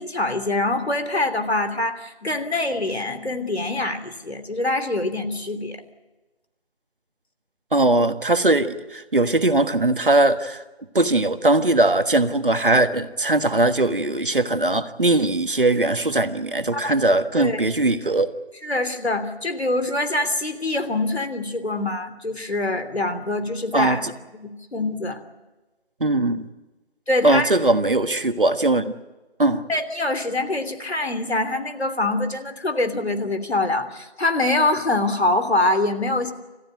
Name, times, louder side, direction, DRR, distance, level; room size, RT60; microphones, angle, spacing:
voice 1, 0.0-5.8 16.7-17.6 18.6-24.1 24.4-25.2 27.1-27.5 29.5-36.3, left 2 dB, 80° left, 8 dB, 3.1 m, -24 dB
voice 2, 7.7-10.6 10.9-18.3 23.7-24.0 26.0-26.5 27.2-28.8 29.4-29.6, right 2 dB, 55° right, 9 dB, 1.5 m, -20 dB
28.0 x 15.0 x 9.1 m, 1.1 s
figure-of-eight pair, 180°, 32 cm